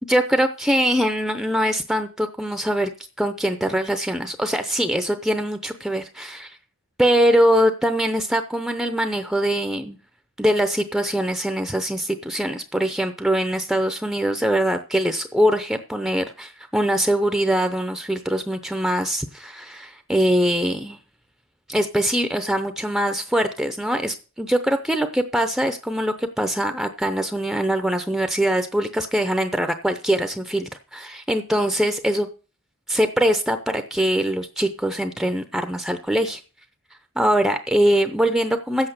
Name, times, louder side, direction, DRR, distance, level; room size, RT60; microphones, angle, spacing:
voice 1, 0.1-2.9 3.2-6.6 7.0-10.0 10.4-21.0 21.7-32.3 32.9-36.4 37.2-38.9, equal, ahead, 8 dB, 0.6 m, -22 dB
9.2 x 8.0 x 6.6 m, 0.36 s
head